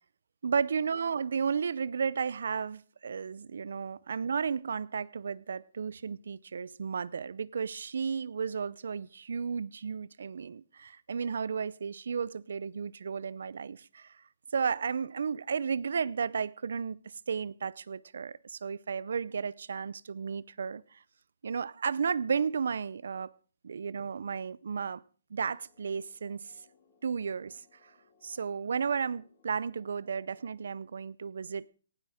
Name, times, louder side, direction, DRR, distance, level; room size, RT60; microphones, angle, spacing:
voice 1, 0.4-14.2 14.5-21.0 21.4-23.3 23.6-25.0 25.3-26.5 27.0-27.9 28.2-31.7, right 6 dB, 75° right, 0.6 m, -33 dB
sound 1, 25.4-30.5, left 5 dB, 25° left, 3.9 m, -67 dB
18.5 x 12.0 x 4.9 m
hypercardioid pair, 160°, 0 cm